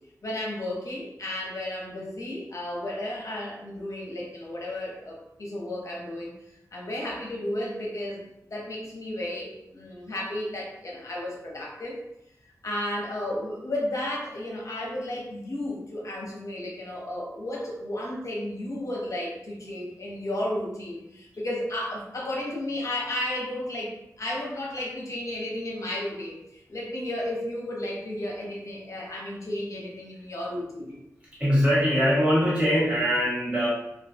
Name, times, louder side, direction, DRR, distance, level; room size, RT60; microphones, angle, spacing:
voice 1, 0.2-6.3 6.7-8.2 8.5-12.0 12.6-31.0, left 1 dB, 55° left, -2 dB, 0.7 m, -33 dB
voice 2, 31.4-33.7, equal, 20° right, -9 dB, 1.4 m, -22 dB
2.2 x 2.2 x 2.8 m, 0.82 s
wide cardioid pair, 75°, 6 cm